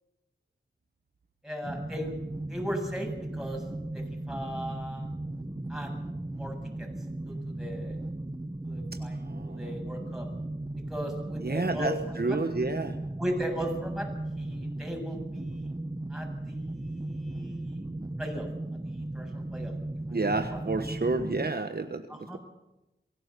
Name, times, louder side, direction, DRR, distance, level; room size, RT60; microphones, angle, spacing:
voice 1, 1.4-2.1 2.5-3.6 3.9-5.1 5.7-5.9 6.3-6.9 7.3-8.0 8.6-9.2 9.4-10.3 10.9-12.4 13.2-14.1 14.4-15.7 16.1-17.9 18.2-18.5 18.8-19.7 20.1-20.2 20.5-20.6 22.1-22.4, equal, ahead, 1 dB, 7.6 m, -37 dB
sound 1, 1.6-21.5, right 2 dB, 20° right, 1.1 m, -36 dB
voice 2, 9.1-9.7 11.4-13.0 20.1-22.4, right 3 dB, 55° right, 7 dB, 1.3 m, -30 dB
23.5 x 17.0 x 6.9 m, 0.97 s
wide cardioid pair, 50°, 19 cm